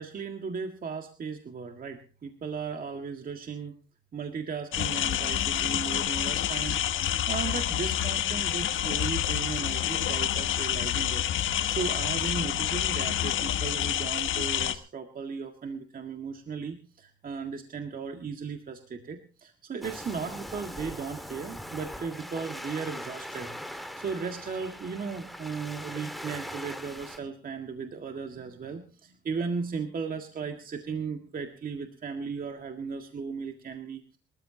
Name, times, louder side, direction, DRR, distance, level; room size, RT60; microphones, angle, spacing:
voice 1, 0.0-3.7 4.1-34.2, right 5 dB, 45° right, 5 dB, 1.9 m, -36 dB
sound 1, 4.7-14.7, left 11 dB, 75° left, 1.4 m, -28 dB
Waves surf, 19.8-27.2, equal, ahead, 1.9 m, -41 dB
27.0 x 14.0 x 2.9 m, 0.36 s
cardioid pair, 90°, 20 cm